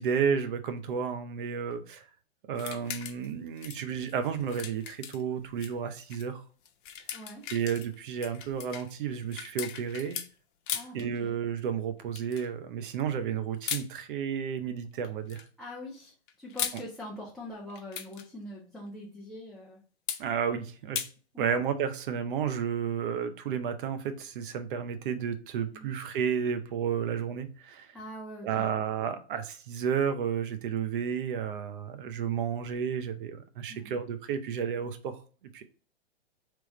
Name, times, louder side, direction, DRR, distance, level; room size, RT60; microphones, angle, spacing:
voice 1, 0.0-2.0 2.5-6.4 7.5-10.2 10.9-15.4 20.2-21.0 21.4-27.9 28.4-35.2 35.5-35.6, right 7 dB, 50° right, 9 dB, 0.7 m, -32 dB
sound 1, 2.6-3.3 3.6-5.7 6.1-6.3 6.7-10.3 10.7-11.0 12.2-12.5 13.6-13.9 15.0-15.5 16.3-16.8 17.7-18.3 20.1-20.2 21.0-21.1, left 8 dB, 50° left, 0.7 m, -38 dB
voice 2, 7.1-7.5 10.7-11.3 15.6-19.8 21.3-21.6 25.7-25.9 27.9-28.7 33.7-33.9, left 1 dB, ahead, -4 dB, 0.8 m, -43 dB
3.4 x 3.0 x 4.0 m, 0.39 s
figure-of-eight pair, 110°, 33 cm